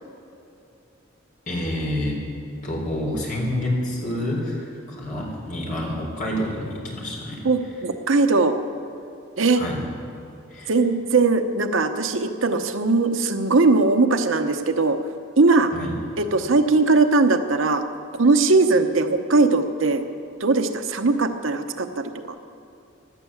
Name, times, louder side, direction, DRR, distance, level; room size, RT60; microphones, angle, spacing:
voice 1, 1.5-2.2 2.6-7.4 9.5-9.8 10.5-10.7 15.7-15.9, left 1 dB, 40° left, -2 dB, 3.7 m, -28 dB
voice 2, 7.4-8.6 9.4-9.6 10.7-15.0 15.4-15.7 16.2-17.8 18.1-20.0 20.4-22.3, right 3 dB, 80° right, 7 dB, 0.9 m, -20 dB
16.5 x 12.0 x 7.2 m, 2.8 s
head